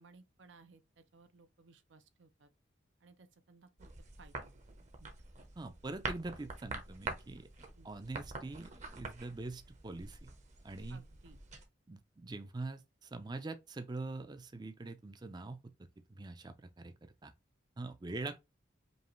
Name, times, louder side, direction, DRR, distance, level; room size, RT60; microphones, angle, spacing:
voice 1, 0.0-2.5 3.0-3.9 4.2-4.6 5.0-5.1 6.4-6.5 7.8-7.9 10.9-11.4 18.1-18.3, right 4 dB, 85° right, 0.7 m, -61 dB
wood balls handling, 3.8-11.6, right 3 dB, 40° right, 0.8 m, -46 dB
voice 2, 5.6-7.5 7.8-10.3 10.6-11.0 11.9-15.6 16.2-17.3 17.8-18.4, right 2 dB, 25° right, 0.4 m, -44 dB
5.3 x 2.4 x 3.1 m
head